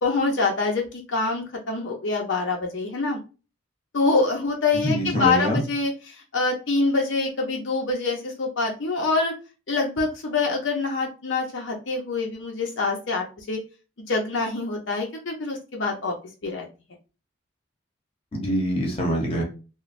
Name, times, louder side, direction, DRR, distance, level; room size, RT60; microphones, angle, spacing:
voice 1, 0.0-3.2 3.9-9.3 9.7-13.6 14.1-16.1 16.4-16.7, left 3 dB, 65° left, 1 dB, 0.6 m, -25 dB
voice 2, 4.8-5.6 18.3-19.4, equal, 30° left, 0 dB, 0.8 m, -24 dB
3.1 x 2.2 x 2.5 m, 0.32 s
head